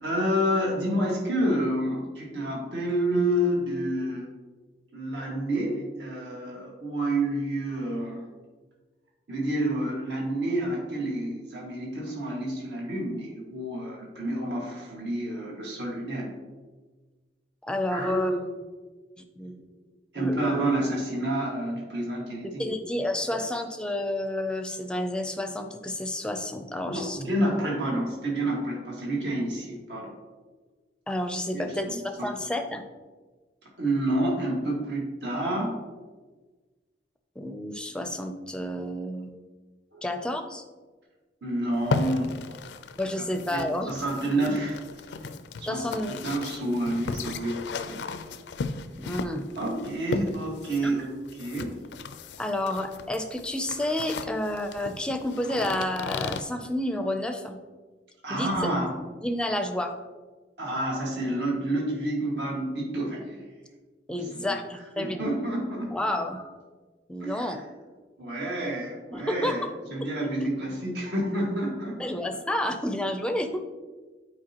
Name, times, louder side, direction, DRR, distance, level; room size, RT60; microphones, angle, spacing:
voice 1, 0.0-4.3 4.9-8.3 9.3-16.3 17.9-18.4 19.4-19.5 20.1-22.6 23.3-23.4 26.9-30.1 31.5-31.9 32.2-32.3 33.8-35.8 39.9-40.0 41.4-42.6 43.2-43.3 43.5-45.0 45.6-45.9 46.2-48.4 49.6-51.8 58.2-58.9 60.6-63.4 64.1-66.0 67.2-67.6 68.2-72.1, right 1 dB, 75° right, -3 dB, 1.8 m, -29 dB
voice 2, 17.6-18.3 19.2-19.5 20.2-20.4 22.4-27.2 31.1-32.8 37.4-39.3 40.0-40.6 43.0-43.9 45.7-46.4 49.0-49.5 50.8-51.0 52.4-57.6 58.3-58.5 59.2-60.0 64.1-65.3 65.9-66.4 67.1-67.6 69.1-69.7 72.0-73.6, left 1 dB, 5° left, 6 dB, 0.5 m, -30 dB
sound 1, 41.7-56.4, left 4 dB, 75° left, 0.4 m, -36 dB
8.6 x 4.6 x 2.9 m, 1.3 s
head